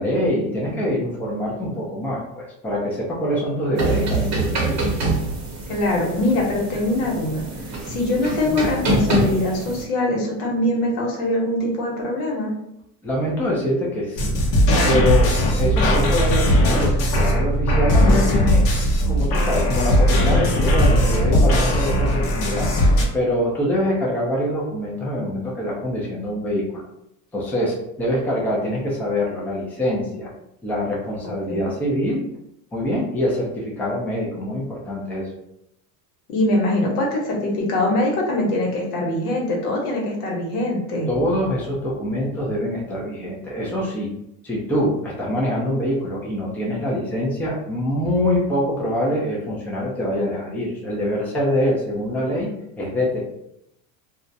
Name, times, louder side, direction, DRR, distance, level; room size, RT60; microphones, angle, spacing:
voice 1, 0.0-4.8 13.0-14.3 14.8-18.7 19.1-22.7 23.1-26.8 27.3-30.3 30.6-32.2 32.7-35.3 41.1-44.1 44.4-53.2, left 1 dB, 5° left, -4 dB, 0.4 m, -24 dB
sound 1, 3.8-9.8, right 2 dB, 35° right, 0.8 m, -25 dB
voice 2, 5.7-7.4 7.9-12.5 31.5-31.7 36.3-41.1, left 1 dB, 80° left, -2 dB, 1.1 m, -23 dB
sound 2, 14.2-23.1, equal, 50° left, 0.8 m, -18 dB
2.3 x 2.1 x 2.6 m, 0.80 s
supercardioid pair, 110°, 46 cm